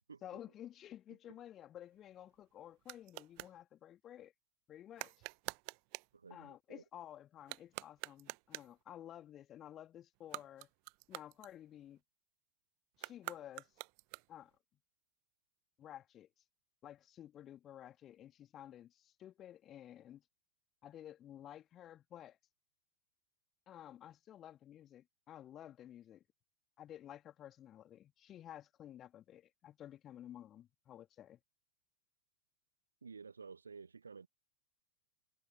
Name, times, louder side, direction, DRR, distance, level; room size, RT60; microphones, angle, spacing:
voice 1, 0.2-4.3 4.7-5.2 6.3-10.7 11.1-12.0 13.0-13.7 14.3-14.5 15.8-16.3 16.8-20.2 20.8-22.4 23.7-26.2 26.8-31.4, left 11 dB, 30° left, 2.7 m, -53 dB
sound 1, 1.8-3.6 4.9-6.2 7.4-8.8 10.2-12.0 12.9-14.6, right 40 dB or more, 45° right, 1.0 m, -48 dB
voice 2, 6.1-6.8 33.0-34.3, right 5 dB, 75° right, 1.7 m, -52 dB
figure-of-eight pair, 90°, 0 cm